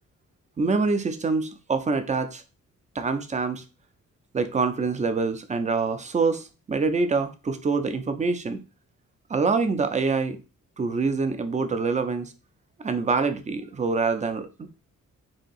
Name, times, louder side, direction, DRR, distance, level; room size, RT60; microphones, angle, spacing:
voice 1, 0.6-2.4 3.0-3.6 4.3-8.6 9.3-10.4 10.8-12.3 12.8-14.7, right 4 dB, 25° right, 0.4 m, -25 dB
2.8 x 2.6 x 4.0 m
wide cardioid pair, 130°, 32 cm